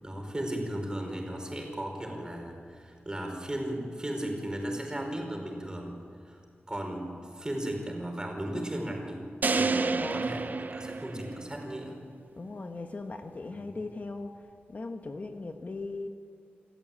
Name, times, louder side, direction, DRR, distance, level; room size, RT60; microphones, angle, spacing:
voice 1, 0.0-6.0 6.2-6.4 6.7-12.0 13.6-13.8, right 1 dB, 20° right, 2 dB, 4.8 m, -36 dB
sound 1, 9.4-11.7, right 4 dB, 45° right, 0.7 m, -29 dB
voice 2, 10.0-10.3 12.4-14.4 14.7-16.1, left 3 dB, 45° left, 5 dB, 1.2 m, -38 dB
27.0 x 14.0 x 8.7 m, 2.3 s
wide cardioid pair, 110°, 4 cm